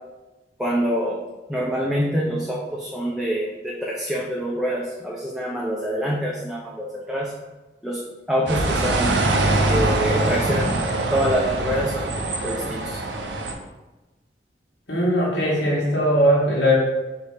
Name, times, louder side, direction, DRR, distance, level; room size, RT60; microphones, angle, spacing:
voice 1, 0.6-1.2 1.5-7.3 7.8-8.0 8.3-9.1 9.6-13.0, equal, ahead, -4 dB, 0.4 m, -26 dB
sound 1, 8.5-13.5, right 2 dB, 85° right, 0.5 m, -23 dB
voice 2, 14.9-16.7, equal, 70° left, -5 dB, 1.4 m, -19 dB
4.8 x 2.7 x 3.3 m, 1.1 s
head